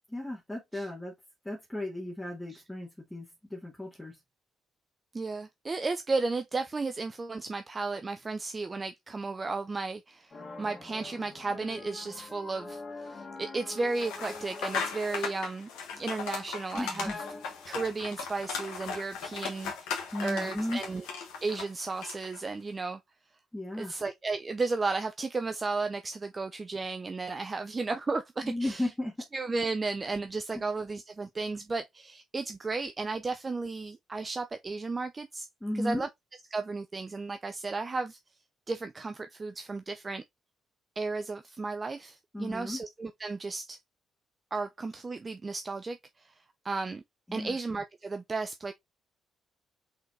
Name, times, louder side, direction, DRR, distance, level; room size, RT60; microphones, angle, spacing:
voice 1, 0.1-1.1 1.4-4.2 16.7-17.2 20.1-20.8 23.5-24.0 28.4-29.1 35.6-36.1 42.3-42.8 47.3-47.6, left 1 dB, 10° left, 1.7 m, -35 dB
voice 2, 5.1-15.7 16.0-17.1 17.7-21.0 21.4-23.0 23.7-28.9 29.3-35.5 35.7-36.1 36.5-38.2 38.7-40.2 41.0-43.8 44.5-46.3 46.6-47.0 47.3-48.7, right 3 dB, 30° right, 0.5 m, -34 dB
sound 1, 10.3-15.5 15.9-16.6 17.0-17.8, left 3 dB, 35° left, 1.8 m, -45 dB
sound 2, 13.9-22.4, left 6 dB, 70° left, 1.2 m, -38 dB
5.1 x 3.9 x 2.7 m
figure-of-eight pair, 45°, 0 cm